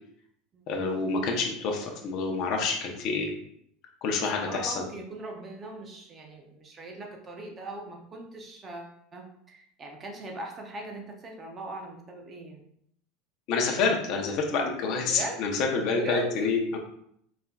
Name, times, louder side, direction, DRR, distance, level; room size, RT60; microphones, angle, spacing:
voice 1, 0.7-3.3 4.0-4.8 13.5-16.8, left 4 dB, 40° left, 1 dB, 0.8 m, -28 dB
voice 2, 4.4-12.6 15.1-15.4 15.9-16.5, right 2 dB, 20° right, 2 dB, 0.6 m, -40 dB
4.2 x 3.8 x 2.3 m, 0.70 s
supercardioid pair, 170°, 0 cm